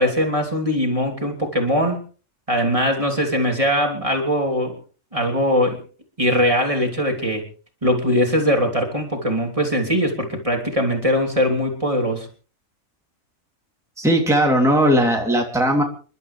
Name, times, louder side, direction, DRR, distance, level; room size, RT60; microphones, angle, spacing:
voice 1, 0.0-2.0 2.5-4.7 5.1-5.8 6.2-7.4 7.8-12.3, equal, 25° right, 1 dB, 3.4 m, -21 dB
voice 2, 14.0-15.8, equal, ahead, 0 dB, 3.1 m, -18 dB
29.0 x 12.5 x 3.4 m, 0.39 s
omnidirectional pair, 1.3 m